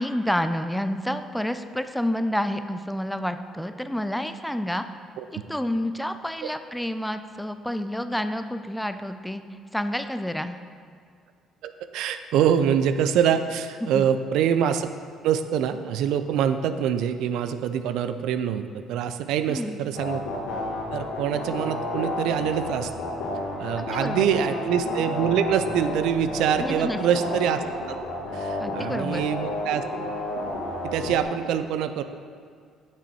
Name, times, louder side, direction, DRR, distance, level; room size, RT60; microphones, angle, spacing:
voice 1, 0.0-4.8 5.5-9.4 9.7-10.6 13.8-14.1 19.5-19.8 23.8-24.3 26.6-27.0 28.6-29.3, left 1 dB, 5° left, 9 dB, 0.5 m, -29 dB
voice 2, 11.6-14.9 15.2-20.2 20.9-22.9 23.6-27.6 28.3-29.8 30.8-32.0, right 8 dB, 70° right, 10 dB, 0.4 m, -25 dB
sound 1, 19.9-31.2, left 2 dB, 80° left, 2.1 m, -31 dB
8.5 x 6.0 x 4.5 m, 2.2 s
hypercardioid pair, 55°, 0 cm